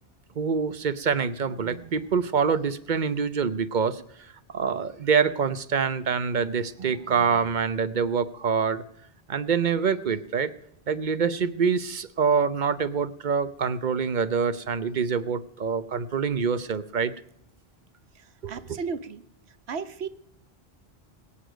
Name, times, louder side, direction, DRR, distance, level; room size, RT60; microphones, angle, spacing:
voice 1, 0.4-4.0 4.5-8.8 9.3-10.5 10.9-17.1 18.4-18.8, right 6 dB, 50° right, 14 dB, 1.0 m, -25 dB
voice 2, 18.2-19.2 19.7-20.1, right 5 dB, 80° right, 13 dB, 1.2 m, -34 dB
22.5 x 8.7 x 5.1 m, 0.74 s
omnidirectional pair, 1.1 m